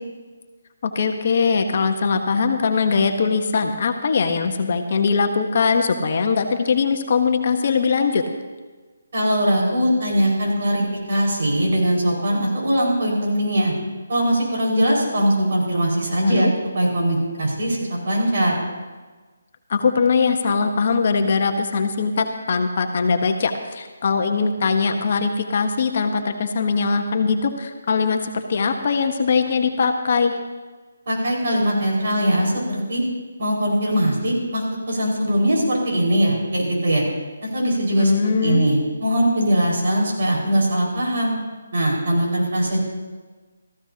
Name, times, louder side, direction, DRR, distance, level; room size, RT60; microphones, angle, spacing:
voice 1, 0.8-8.2 16.2-16.5 19.7-30.4 38.0-38.8, left 5 dB, 45° left, 5 dB, 1.1 m, -21 dB
voice 2, 9.1-13.7 14.1-18.6 31.0-33.0 33.4-37.0 37.4-38.1 38.4-41.3 41.7-42.8, equal, 60° right, -2 dB, 5.1 m, -21 dB
18.0 x 14.5 x 2.9 m, 1.4 s
hypercardioid pair, 165°, 0 cm